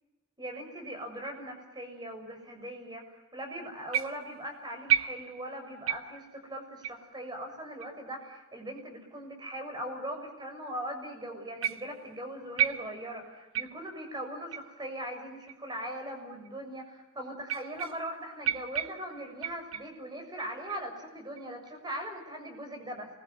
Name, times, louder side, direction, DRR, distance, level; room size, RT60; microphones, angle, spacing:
voice 1, 0.4-23.1, right 1 dB, 20° right, 4 dB, 6.7 m, -40 dB
sound 1, 3.9-4.4 4.9-5.6 5.9-6.3 6.8-7.0 7.8-7.9 8.8-8.9 9.8-9.9 11.6-12.0 12.6-13.2 13.5-14.0 14.5-14.7 15.5-15.6 16.4-16.5 17.4-18.2 18.4-20.0 20.4-20.8 21.4-21.7, right 10 dB, 75° right, 1.5 m, -33 dB
27.5 x 22.0 x 9.5 m, 1.1 s
head